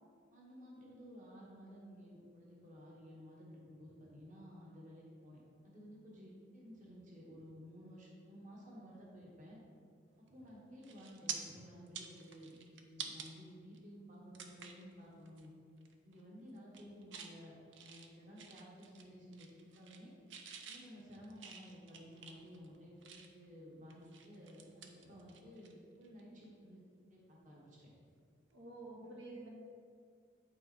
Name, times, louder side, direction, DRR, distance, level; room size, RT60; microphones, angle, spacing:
voice 1, 0.3-9.6 10.3-15.5 16.0-20.1 20.7-26.8 27.1-27.9, equal, 40° right, -4 dB, 1.3 m, -54 dB
sound 1, 10.3-10.5 10.8-11.4 11.8-13.3 13.7-13.8 14.3-14.8 15.3-15.5 15.8-16.2 16.6-17.3 17.7-19.1 19.3-20.0 20.3-23.5 23.9-25.7 26.0-26.2 28.1-28.2, right 7 dB, 65° right, 0.6 m, -49 dB
voice 2, 28.5-29.5, right 2 dB, 85° right, -3 dB, 1.5 m, -49 dB
8.9 x 4.3 x 4.3 m, 2.2 s
head